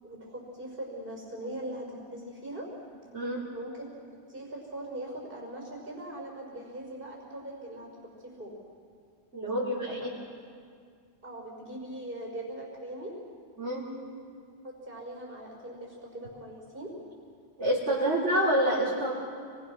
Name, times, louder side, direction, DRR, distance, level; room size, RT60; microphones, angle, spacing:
voice 1, 0.0-2.7 3.5-3.9 4.3-7.9 8.2-8.5 9.4-10.1 11.2-13.1 14.8-16.9 17.9-18.2, right 1 dB, 50° right, -1 dB, 5.6 m, -40 dB
voice 2, 9.3-10.1 13.6-13.9 17.6-19.1, right 1 dB, 75° right, -7 dB, 4.2 m, -27 dB
30.0 x 22.0 x 6.3 m, 2.2 s
omnidirectional pair, 1.2 m